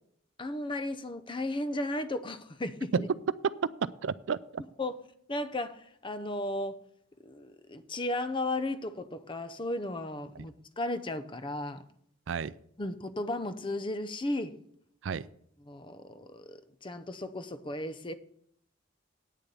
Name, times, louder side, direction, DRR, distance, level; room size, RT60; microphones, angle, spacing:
voice 1, 0.4-3.1 4.8-5.0 5.3-6.8 7.2-11.8 12.8-14.5 15.6-18.1, left 1 dB, 25° left, 0.7 m, -35 dB
voice 2, 3.8-4.6 10.4-10.5 12.3-12.5 15.0-15.3, right 6 dB, 75° right, 0.4 m, -32 dB
9.3 x 6.9 x 7.0 m
head